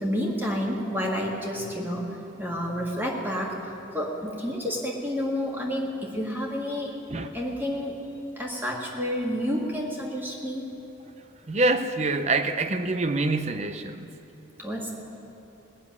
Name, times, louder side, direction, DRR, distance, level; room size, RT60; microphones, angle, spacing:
voice 1, 0.0-2.1 2.4-6.9 7.3-8.0 8.4-10.6 14.6-14.9, equal, 10° right, -2 dB, 1.9 m, -30 dB
voice 2, 11.5-14.1, right 2 dB, 35° right, 9 dB, 0.6 m, -26 dB
19.0 x 7.2 x 9.6 m, 3.0 s
head